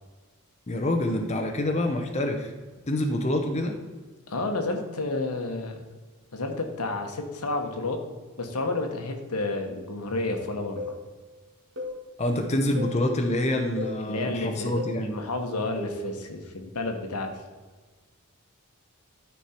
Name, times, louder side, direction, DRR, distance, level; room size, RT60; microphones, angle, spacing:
voice 1, 0.7-2.5 2.9-3.8 12.2-15.2, left 1 dB, 30° left, 4 dB, 0.7 m, -26 dB
voice 2, 4.3-5.8 6.3-8.0 8.4-10.8 14.0-17.3, left 2 dB, 90° left, 4 dB, 1.2 m, -30 dB
sound 1, 10.8-11.0 11.8-12.0 12.8-13.0 13.8-14.0 14.8-15.0 15.8-16.1, left 2 dB, 55° right, 2.1 m, -34 dB
12.5 x 4.5 x 4.4 m, 1.4 s
head